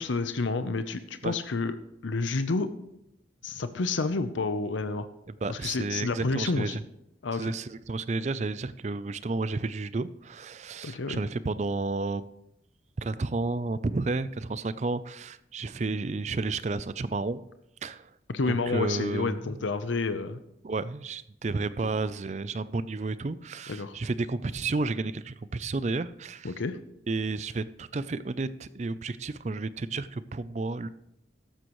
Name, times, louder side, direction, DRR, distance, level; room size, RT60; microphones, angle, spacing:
voice 1, 0.0-1.7 2.0-2.7 3.4-5.1 5.5-6.8 7.2-7.5 10.8-11.2 18.3-20.4 23.7-24.0 26.4-26.8, left 3 dB, 85° left, 11 dB, 0.7 m, -29 dB
voice 2, 5.3-6.8 7.3-12.3 13.0-17.4 17.8-18.1 18.5-19.6 20.6-26.5 27.1-30.9, right 3 dB, 35° right, 15 dB, 0.4 m, -31 dB
14.0 x 11.5 x 3.1 m, 0.81 s
head